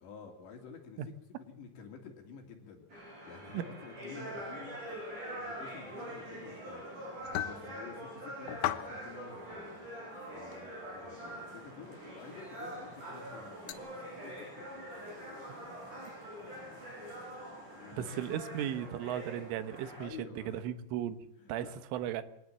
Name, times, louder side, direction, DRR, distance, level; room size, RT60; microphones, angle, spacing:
voice 1, 0.0-14.7 14.9-15.0 17.7-18.2 20.0-20.6 21.4-21.8, left 6 dB, 60° left, 3 dB, 4.7 m, -51 dB
sound 1, 2.9-20.0, right 1 dB, 35° right, 9.5 m, -44 dB
sound 2, 7.2-7.6 8.5-8.9 9.5-9.6 10.5-10.6 12.6-12.7 13.7-13.8, left 13 dB, 85° left, 3.8 m, -35 dB
voice 2, 18.0-21.2 21.5-22.2, right 10 dB, 75° right, 11 dB, 3.6 m, -36 dB
24.0 x 18.5 x 7.5 m, 0.80 s
omnidirectional pair, 6.0 m